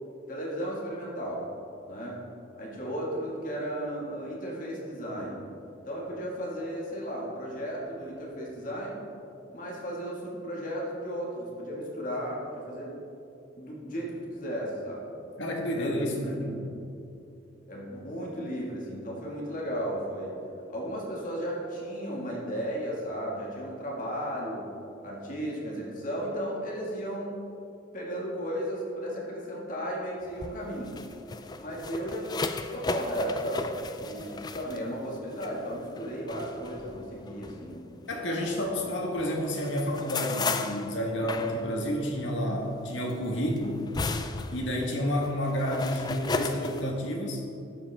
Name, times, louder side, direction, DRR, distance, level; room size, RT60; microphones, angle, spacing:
voice 1, 0.3-1.5 1.8-2.3 2.6-5.4 5.9-9.1 9.5-13.0 13.6-15.1 15.8-16.7 17.7-20.4 20.7-24.7 25.0-27.5 27.9-31.0 31.6-38.0, equal, 40° left, -4 dB, 1.9 m, -35 dB
voice 2, 15.4-16.4 38.1-43.9 44.5-47.5, equal, 75° left, 0 dB, 1.5 m, -30 dB
sound 1, 30.3-38.8 39.2-46.8, left 3 dB, 20° left, 0.3 m, -36 dB
12.0 x 7.7 x 3.5 m, 2.7 s
head